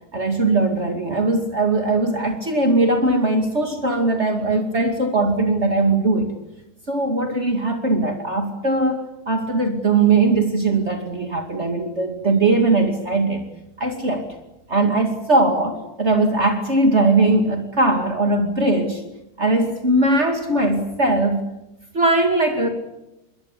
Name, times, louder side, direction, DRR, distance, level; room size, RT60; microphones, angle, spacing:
voice 1, 0.1-6.3 6.9-13.5 13.8-14.3 14.7-19.0 19.4-21.5 21.9-22.7, right 2 dB, 45° right, 4 dB, 2.8 m, -20 dB
27.0 x 22.0 x 8.4 m, 0.91 s
omnidirectional pair, 1.7 m